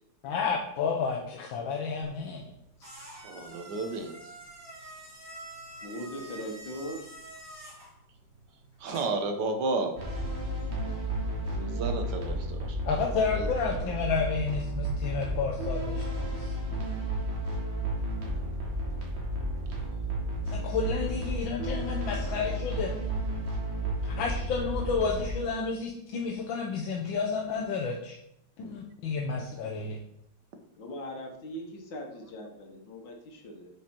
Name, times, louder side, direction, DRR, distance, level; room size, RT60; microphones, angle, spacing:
voice 1, 0.2-2.4 12.9-16.5 20.5-22.9 24.2-28.1 28.6-30.0, left 5 dB, 85° left, 0 dB, 1.7 m, -31 dB
sound 1, 2.0-9.3, right 1 dB, 10° right, 2.5 m, -47 dB
voice 2, 3.2-4.1 8.8-9.9 11.5-12.8 13.3-13.5, right 3 dB, 65° right, 6 dB, 1.6 m, -32 dB
voice 3, 5.8-7.1 30.8-33.7, equal, 70° left, 2 dB, 2.1 m, -40 dB
sound 2, 10.0-25.3, right 1 dB, 35° right, 2.1 m, -32 dB
8.4 x 5.3 x 4.4 m, 0.75 s
omnidirectional pair, 2.1 m